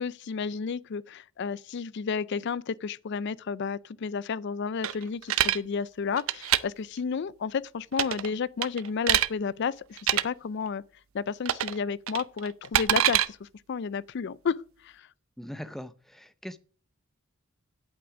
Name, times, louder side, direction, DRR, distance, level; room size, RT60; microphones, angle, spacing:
voice 1, 0.0-10.8 11.1-14.6 14.8-15.1, left 5 dB, 55° left, 0.4 m, -32 dB
sound 1, 4.8-5.6 6.2-6.6 7.9-8.3 8.6-9.3 10.0-10.2 11.4-11.8 12.1-13.3, right 11 dB, 70° right, 0.6 m, -24 dB
voice 2, 15.4-16.6, equal, ahead, 0.5 m, -41 dB
8.6 x 8.4 x 4.8 m
head